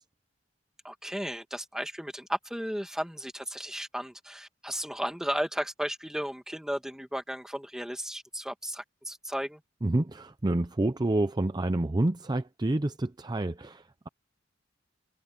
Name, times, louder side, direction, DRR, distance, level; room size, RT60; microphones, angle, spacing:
voice 1, 0.8-9.6, equal, 5° right, 1.8 m, -34 dB
voice 2, 9.8-14.1, right 1 dB, 20° right, 0.6 m, -28 dB
head